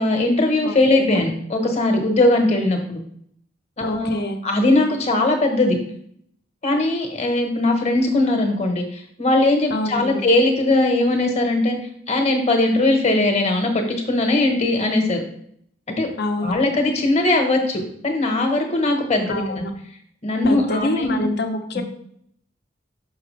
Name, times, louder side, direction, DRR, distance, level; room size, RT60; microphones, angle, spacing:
voice 1, 0.0-3.0 3.8-5.8 6.6-11.8 12.1-15.2 15.9-16.1 16.4-19.7 20.2-21.2 21.7-21.8, left 2 dB, 35° left, 3 dB, 1.2 m, -20 dB
voice 2, 0.6-1.2 3.8-4.4 9.7-10.2 16.2-16.5 19.3-19.7 20.4-21.8, left 1 dB, 60° left, 5 dB, 0.8 m, -26 dB
5.9 x 5.7 x 3.3 m, 0.67 s
head